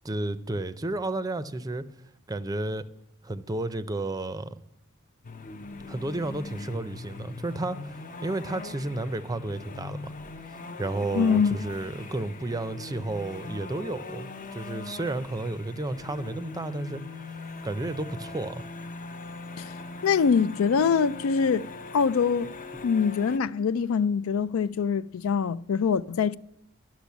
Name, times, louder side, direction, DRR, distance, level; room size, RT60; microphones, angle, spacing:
voice 1, 0.0-1.9 2.3-2.8 3.2-4.6 5.9-10.1 10.8-17.3 17.6-18.6, right 2 dB, 20° right, 0.5 m, -32 dB
sound 1, 5.2-23.4, left 3 dB, 40° left, 0.6 m, -41 dB
voice 2, 11.1-11.5 19.6-19.7 20.0-21.7 21.9-22.5 22.8-26.4, left 6 dB, 85° left, 0.4 m, -24 dB
12.0 x 6.1 x 8.3 m
head